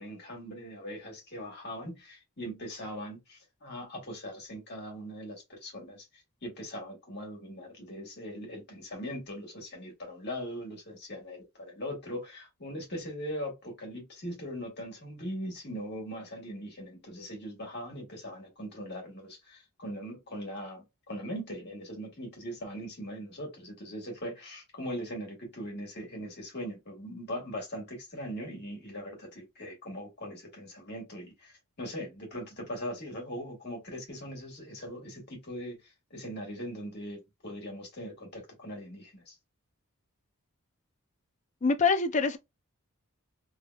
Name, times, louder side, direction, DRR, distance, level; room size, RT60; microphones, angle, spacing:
voice 1, 0.0-39.4, equal, 50° left, 1.7 m, -40 dB
voice 2, 41.6-42.4, left 4 dB, 35° left, 0.4 m, -25 dB
3.4 x 2.8 x 2.2 m
head